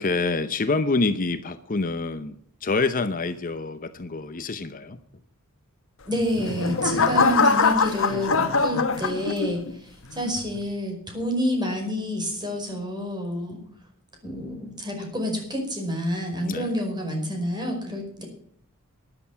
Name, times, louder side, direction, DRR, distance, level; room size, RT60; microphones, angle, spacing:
voice 1, 0.0-2.3 2.6-5.0 16.4-16.8, left 3 dB, 40° left, 11 dB, 0.8 m, -26 dB
sound 1, 6.1-9.7 10.2-10.6, left 4 dB, 65° left, 1.3 m, -23 dB
voice 2, 6.1-9.6 10.1-13.6 14.2-18.2, equal, 20° right, 2 dB, 5.2 m, -28 dB
13.0 x 11.0 x 5.8 m, 0.64 s
head